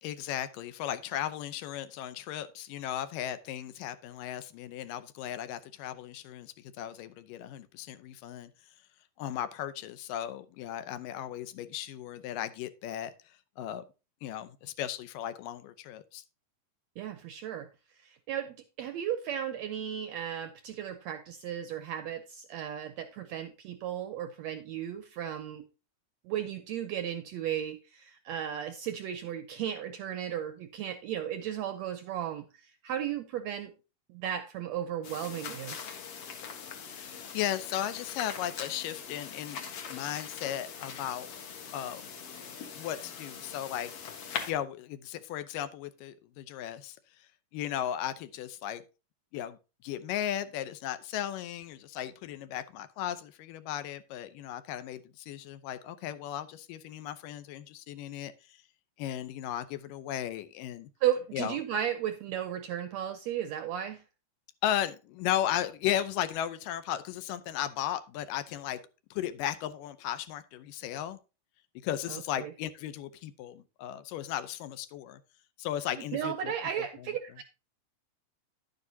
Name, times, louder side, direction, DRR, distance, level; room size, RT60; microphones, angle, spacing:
voice 1, 0.0-8.5 9.2-13.1 13.6-13.8 14.2-16.2 36.8-39.6 39.9-41.3 41.7-42.0 42.8-43.9 44.5-47.0 47.5-48.8 49.3-58.3 59.0-60.9 61.3-61.6 64.6-68.8 69.1-71.2 71.8-75.2 75.6-76.5 77.0-77.1, left 11 dB, 80° left, 2.4 m, -36 dB
voice 2, 17.0-17.7 18.0-25.6 26.2-33.7 34.1-35.8 61.0-64.0 72.1-72.5 75.9-77.4, right 10 dB, 80° right, 1.6 m, -35 dB
sound 1, 35.0-44.5, left 6 dB, 55° left, 2.0 m, -42 dB
10.5 x 9.4 x 2.7 m
omnidirectional pair, 3.9 m